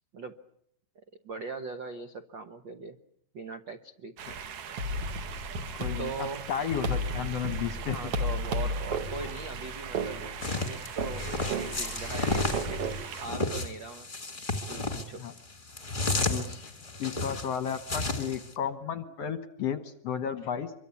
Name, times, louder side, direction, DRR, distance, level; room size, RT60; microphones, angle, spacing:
voice 1, 1.2-3.0 3.3-4.1 6.0-6.5 7.9-10.2 10.5-11.3 11.7-12.8 13.2-14.1 14.7-15.2, right 4 dB, 85° right, 8 dB, 1.0 m, -40 dB
sound 1, 4.2-13.3, right 7 dB, 65° right, 3.1 m, -42 dB
sound 2, 4.8-13.0, equal, 45° right, 2.7 m, -34 dB
voice 2, 5.8-6.1 6.5-8.0 15.2-15.3 16.3-16.7 17.0-20.7, left 8 dB, 60° left, 11 dB, 1.8 m, -33 dB
sound 3, 10.4-18.5, left 2 dB, 20° left, 1.6 m, -32 dB
26.0 x 23.5 x 8.4 m, 0.70 s
omnidirectional pair, 4.1 m